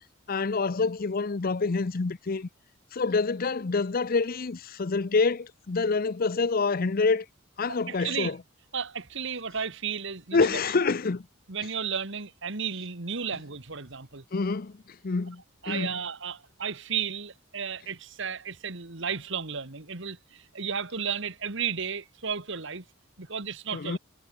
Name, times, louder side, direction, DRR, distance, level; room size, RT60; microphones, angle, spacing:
voice 1, 0.3-2.5 2.9-7.3 7.6-8.4 10.3-11.3 14.3-16.0 23.7-24.0, left 4 dB, 45° left, 0.6 m, -27 dB
voice 2, 7.7-8.3 8.7-10.6 11.5-14.2 15.6-22.9 23.2-24.0, right 6 dB, 60° right, 1.9 m, -33 dB
head